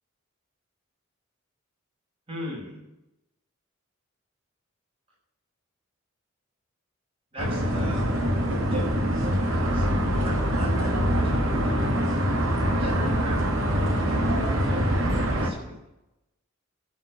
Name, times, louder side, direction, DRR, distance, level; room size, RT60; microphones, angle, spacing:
voice 1, 2.3-2.9 7.3-9.0 9.4-11.8 12.2-15.8, left 1 dB, 25° right, -3 dB, 5.8 m, -39 dB
sound 1, 7.4-15.5, equal, 80° right, 2.2 m, -24 dB
15.5 x 6.1 x 6.5 m, 0.92 s
head